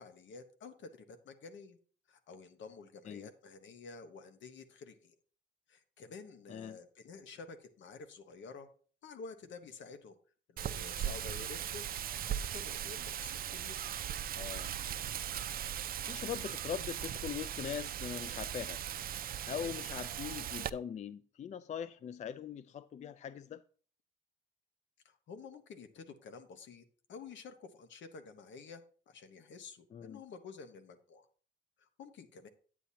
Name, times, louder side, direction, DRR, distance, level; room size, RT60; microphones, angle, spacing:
voice 1, 0.0-1.8 2.1-5.2 5.7-8.7 9.0-10.1 10.5-11.9 12.2-13.8 19.6-19.7 25.0-31.3 31.8-32.5, left 4 dB, 70° left, 1.2 m, -50 dB
Wind, 10.6-20.7, right 10 dB, 50° right, 0.4 m, -39 dB
voice 2, 14.3-14.7 16.1-18.8 19.5-23.6 29.9-30.2, left 8 dB, 35° left, 0.4 m, -41 dB
9.0 x 8.4 x 2.8 m
cardioid pair, 90°, 20 cm